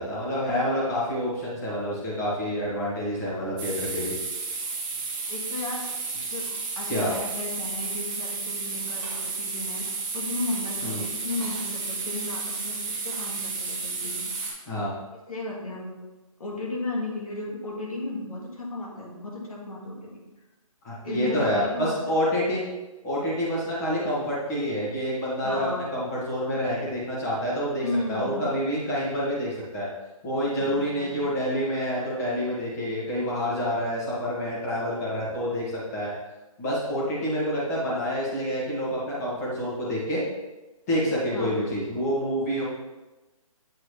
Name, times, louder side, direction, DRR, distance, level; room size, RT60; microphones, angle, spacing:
voice 1, 0.0-4.1 6.9-7.1 10.8-11.0 14.6-14.9 20.8-22.6 23.0-29.9 30.2-36.1 36.6-40.2 40.9-42.6, equal, 30° left, -6 dB, 2.0 m, -28 dB
sound 1, 3.6-14.5, right 4 dB, 15° right, 0.7 m, -32 dB
voice 2, 5.3-5.9 6.3-6.4 6.7-9.9 10.1-14.5 15.3-16.0 16.4-20.1 21.0-22.0 25.4-25.9 27.8-28.5 30.6-31.3 41.3-41.6, left 2 dB, 80° left, -3 dB, 2.2 m, -34 dB
8.1 x 3.8 x 3.4 m, 1.1 s
hypercardioid pair, 165°, 18 cm